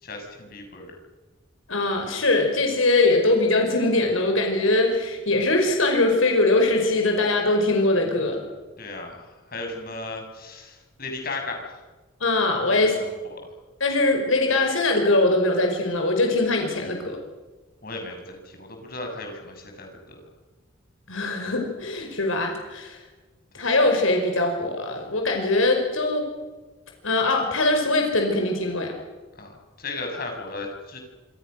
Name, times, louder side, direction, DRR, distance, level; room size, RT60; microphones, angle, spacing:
voice 1, 0.0-1.0 8.8-11.8 12.7-13.5 17.8-20.3 23.6-23.7 29.4-31.0, left 3 dB, 45° left, 3 dB, 6.8 m, -36 dB
voice 2, 1.7-8.4 12.2-13.0 13.8-17.2 21.1-23.0 23.6-26.2 27.0-28.9, left 2 dB, 80° left, 3 dB, 5.3 m, -22 dB
27.0 x 26.5 x 6.6 m, 1.2 s
head